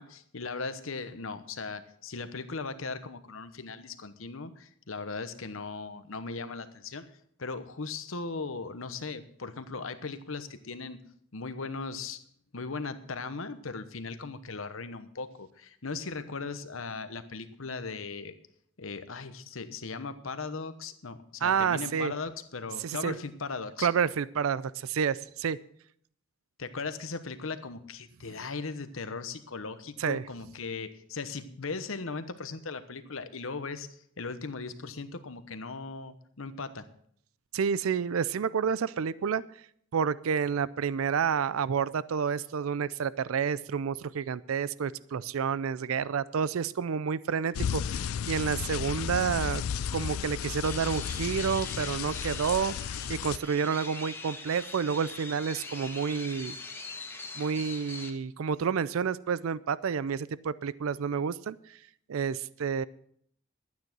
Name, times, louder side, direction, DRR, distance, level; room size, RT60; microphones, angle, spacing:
voice 1, 0.0-7.0 7.4-11.0 11.3-12.2 12.5-18.4 18.8-23.9 26.6-33.9 34.2-36.9, left 4 dB, 70° left, 11 dB, 1.1 m, -38 dB
voice 2, 21.4-22.1 22.8-23.1 23.8-25.6 30.0-30.2 37.5-39.4 39.9-49.6 49.9-56.6 57.4-61.8 62.1-62.8, right 6 dB, 80° right, 19 dB, 0.4 m, -29 dB
sound 1, 47.5-53.4, left 8 dB, 90° left, 0.4 m, -33 dB
sound 2, 50.6-58.1, left 3 dB, 10° left, 1.6 m, -42 dB
12.0 x 9.4 x 6.0 m, 0.65 s
head